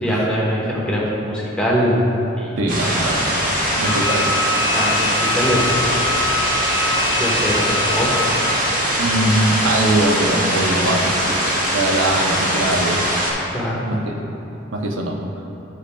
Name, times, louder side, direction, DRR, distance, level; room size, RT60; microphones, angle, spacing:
voice 1, 0.0-2.0 2.4-2.6 2.9-3.0 4.7-5.8 7.1-8.2 13.5-13.8, equal, 5° left, -5 dB, 0.9 m, -22 dB
voice 2, 2.6-3.3 3.7-4.3 9.0-13.1 13.9-14.2 14.7-15.2, right 1 dB, 70° right, 1 dB, 0.6 m, -22 dB
sound 1, 2.7-13.3, equal, 40° right, 1.2 m, -21 dB
Wind instrument woodwind instrument, 3.8-8.5, left 3 dB, 20° left, 0.4 m, -25 dB
10.0 x 5.0 x 2.2 m, 2.9 s
head